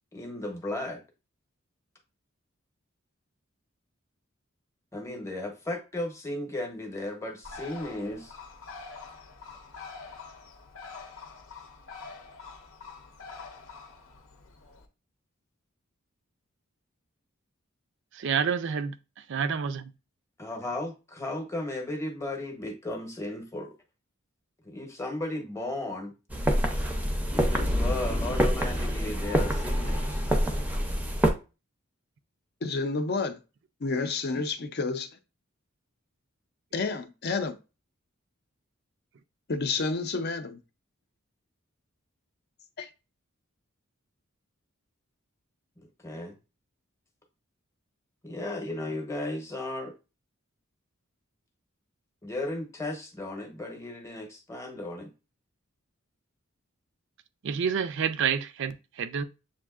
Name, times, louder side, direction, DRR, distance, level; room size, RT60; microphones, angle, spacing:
voice 1, 0.1-1.0 4.9-8.3 20.4-23.7 24.6-26.1 27.3-30.3 45.8-46.3 48.2-49.9 52.2-55.1, left 1 dB, 15° left, 0.8 m, -35 dB
Bird, 7.4-14.9, left 4 dB, 80° left, 0.8 m, -45 dB
voice 2, 18.2-18.9 19.3-19.9 57.4-59.2, right 7 dB, 60° right, 0.4 m, -28 dB
sound 1, 26.3-31.3, equal, 5° right, 0.5 m, -26 dB
voice 3, 32.6-33.4 33.8-35.1 36.7-37.6 39.5-40.6 42.8-42.9, left 3 dB, 50° left, 0.5 m, -30 dB
7.2 x 2.6 x 2.4 m
head